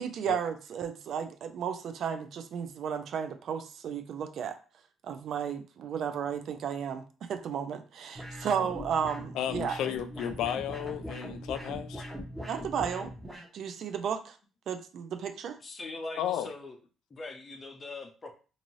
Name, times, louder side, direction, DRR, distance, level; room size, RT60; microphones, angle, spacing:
voice 1, 0.0-4.5 5.0-7.0 7.3-9.8 12.5-14.4 14.7-15.6, right 7 dB, 65° right, 0.4 m, -33 dB
sound 1, 8.1-13.5, equal, 15° right, 1.0 m, -41 dB
voice 2, 9.3-12.1 16.2-16.5, left 10 dB, 80° left, 0.3 m, -33 dB
voice 3, 15.6-16.8 17.1-18.3, left 2 dB, 35° left, 0.7 m, -41 dB
2.6 x 2.6 x 3.0 m
cardioid pair, 85°, 0 cm